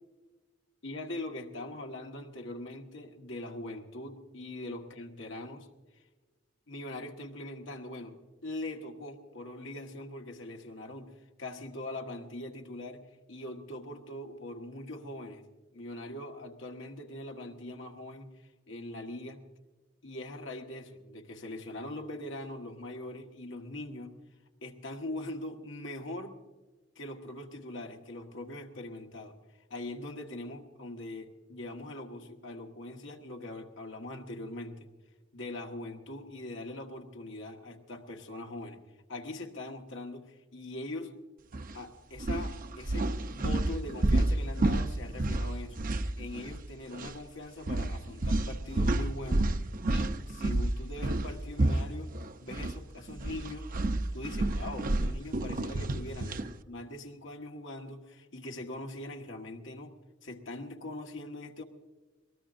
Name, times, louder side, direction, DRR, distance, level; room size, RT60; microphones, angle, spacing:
voice 1, 0.8-5.7 6.7-11.1 11.4-15.5 15.7-18.3 18.7-19.4 20.0-24.1 24.6-26.4 26.9-29.4 29.7-34.9 35.3-38.8 39.1-41.1 41.7-45.8 46.2-49.5 49.9-52.1 52.4-53.7 54.1-56.3 56.7-59.9 60.2-61.6, left 1 dB, 85° left, 2 dB, 1.6 m, -42 dB
sound 1, 41.5-41.7 42.2-46.7 46.9-47.1 47.7-52.8 53.1-56.5, right 2 dB, 45° right, 0.6 m, -30 dB
22.5 x 18.5 x 2.6 m, 1.2 s
head